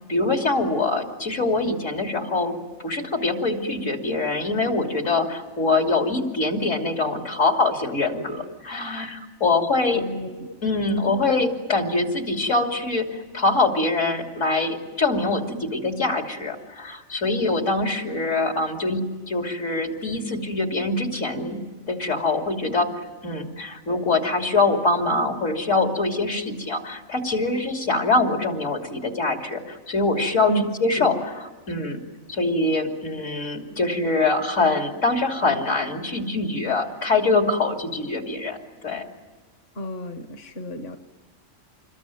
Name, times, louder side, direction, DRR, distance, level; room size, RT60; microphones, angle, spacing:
voice 1, 0.1-2.6 2.8-10.0 10.6-21.6 21.9-22.9 23.2-32.0 32.3-38.6 38.8-39.1, left 3 dB, 80° left, 3 dB, 3.4 m, -24 dB
voice 2, 9.9-10.5 30.5-30.6 31.0-31.2 39.7-41.0, right 2 dB, 55° left, 7 dB, 1.3 m, -31 dB
27.0 x 21.5 x 9.2 m, 1.3 s
omnidirectional pair, 1.3 m